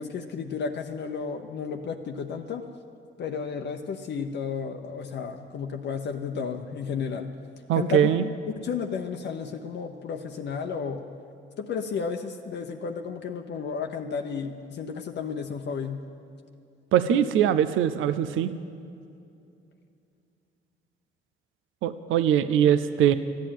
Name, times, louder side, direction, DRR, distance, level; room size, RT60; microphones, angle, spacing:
voice 1, 0.0-2.6 3.2-7.3 7.7-8.3 8.6-11.0 11.6-16.0, left 6 dB, 60° left, 4 dB, 0.8 m, -32 dB
voice 2, 7.7-8.2 16.9-18.5 21.8-23.1, right 10 dB, 85° right, 13 dB, 0.6 m, -22 dB
14.0 x 9.0 x 9.3 m, 2.6 s
cardioid pair, 90°, 20 cm